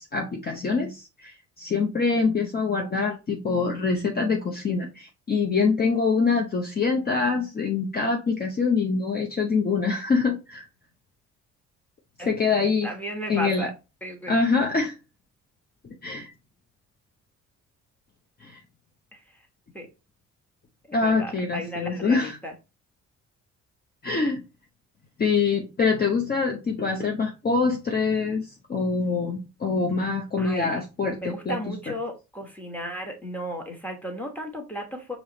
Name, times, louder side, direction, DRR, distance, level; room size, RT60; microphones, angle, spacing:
voice 1, 0.0-10.7 12.2-12.9 13.3-13.7 14.3-15.0 16.0-16.3 18.4-18.6 20.9-22.4 24.0-24.4 25.2-31.9, left 4 dB, 30° left, 1 dB, 0.7 m, -25 dB
voice 2, 12.8-13.7 14.0-14.4 19.1-19.2 19.7-19.9 20.9-22.5 30.4-30.8 31.2-35.2, equal, 5° left, 1 dB, 1.2 m, -34 dB
4.8 x 3.0 x 2.8 m, 0.28 s
cardioid pair, 90°, 30 cm